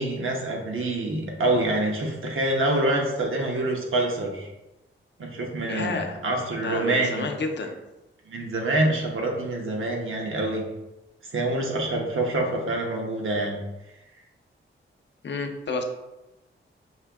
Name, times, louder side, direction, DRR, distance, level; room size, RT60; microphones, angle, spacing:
voice 1, 0.0-4.5 5.2-7.3 8.3-10.6 11.3-13.6, right 2 dB, 70° right, 0 dB, 1.0 m, -26 dB
voice 2, 5.7-6.2 6.6-7.8 15.2-15.8, left 3 dB, 55° left, 4 dB, 0.6 m, -30 dB
5.5 x 2.7 x 3.5 m, 0.98 s
wide cardioid pair, 105°, 21 cm